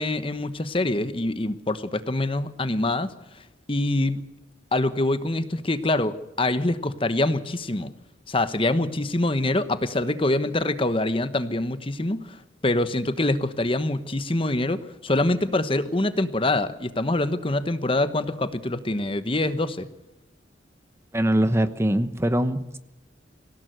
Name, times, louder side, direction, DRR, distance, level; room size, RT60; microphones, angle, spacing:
voice 1, 0.0-3.1 3.7-4.2 4.7-7.9 8.3-12.4 12.6-19.9, left 2 dB, 30° left, 11 dB, 1.1 m, -25 dB
voice 2, 21.1-22.8, right 1 dB, 15° right, 11 dB, 1.0 m, -22 dB
26.0 x 17.0 x 7.9 m, 0.95 s
head